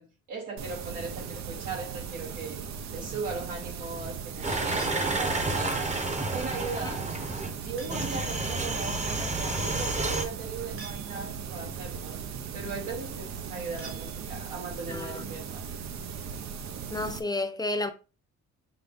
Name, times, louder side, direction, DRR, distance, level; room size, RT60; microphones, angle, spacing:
voice 1, 0.0-2.6 2.9-5.9 6.3-7.1 7.6-12.2 12.5-15.6, right 4 dB, 90° right, 2.8 m, -38 dB
sound 1, 0.6-17.2, right 7 dB, 65° right, 0.7 m, -38 dB
sound 2, 4.4-7.5 7.9-10.2, right 2 dB, 25° right, 0.9 m, -30 dB
sound 3, 7.8-8.3 10.8-11.6 13.8-14.7, right 4 dB, 45° right, 1.8 m, -49 dB
voice 2, 14.9-15.2 16.9-17.9, left 2 dB, 15° left, 0.8 m, -31 dB
5.6 x 2.6 x 3.5 m
cardioid pair, 90°, 30 cm